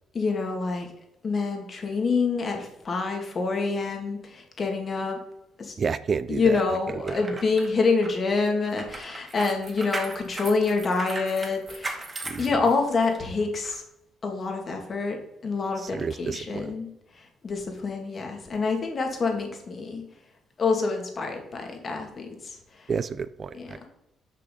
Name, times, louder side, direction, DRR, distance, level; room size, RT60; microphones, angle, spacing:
voice 1, 0.1-0.9 1.2-5.2 5.6-5.8 6.3-13.8 14.2-15.2 15.4-16.9 17.2-20.0 20.6-22.9 23.5-23.9, left 4 dB, 40° left, 3 dB, 2.5 m, -27 dB
voice 2, 5.8-6.6 7.0-7.2 12.3-12.4 15.8-16.7 22.9-23.8, right 6 dB, 45° right, 15 dB, 0.5 m, -30 dB
sound 1, 6.9-13.2 13.6-13.8, right 2 dB, 25° right, 1.8 m, -38 dB
6.8 x 6.1 x 6.9 m, 0.86 s
cardioid pair, 90°, 0 cm